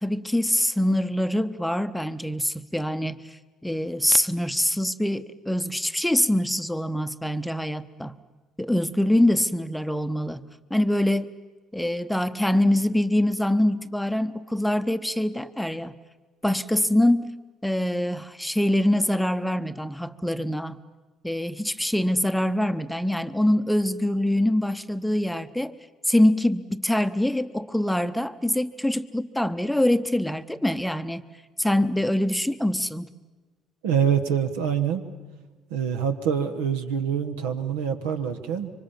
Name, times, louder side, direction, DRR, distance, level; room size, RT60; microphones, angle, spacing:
voice 1, 0.0-3.2 3.6-8.1 8.6-10.4 10.7-11.3 11.7-15.9 16.4-17.3 17.6-20.8 21.2-25.7 26.1-31.2 31.6-33.1, left 1 dB, 5° left, 10 dB, 0.9 m, -24 dB
voice 2, 33.8-35.0 35.7-38.7, right 8 dB, 70° right, 7 dB, 1.3 m, -25 dB
26.0 x 24.5 x 7.2 m, 1.3 s
figure-of-eight pair, 50°, 0 cm